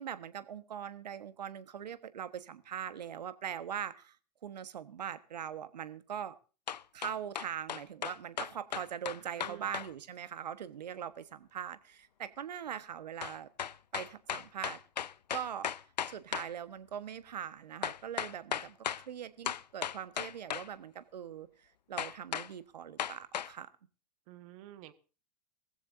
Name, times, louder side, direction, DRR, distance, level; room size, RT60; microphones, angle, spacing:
voice 1, 0.0-4.2 4.4-6.3 6.9-13.5 13.9-14.8 15.3-15.7 16.1-23.7, right 9 dB, 75° right, 15 dB, 1.3 m, -41 dB
sound 1, 6.7-9.9 13.2-16.5 17.8-19.0 19.4-20.7 22.0-22.5 23.0-23.5, left 9 dB, 85° left, 0.6 m, -36 dB
voice 2, 9.1-9.7 24.3-24.9, right 14 dB, 55° right, 12 dB, 1.6 m, -51 dB
19.0 x 15.0 x 2.6 m, 0.36 s
hypercardioid pair, 100°, 21 cm